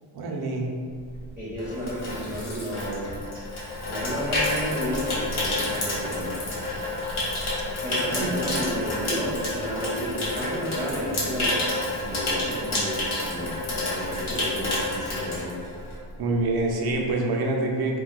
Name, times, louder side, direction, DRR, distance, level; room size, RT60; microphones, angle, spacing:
voice 1, 0.1-0.7 8.1-8.3 16.2-18.0, right 2 dB, 55° right, -1 dB, 0.5 m, -26 dB
Water tap faucet / Sink (filling or washing), 1.1-16.1 16.4-16.7, left 2 dB, 80° left, 0.9 m, -29 dB
voice 2, 1.4-3.4 3.8-6.4 7.8-11.6 12.0-15.5, equal, 5° right, -9 dB, 0.8 m, -32 dB
2.2 x 2.2 x 3.9 m, 2.1 s
wide cardioid pair, 105°, 48 cm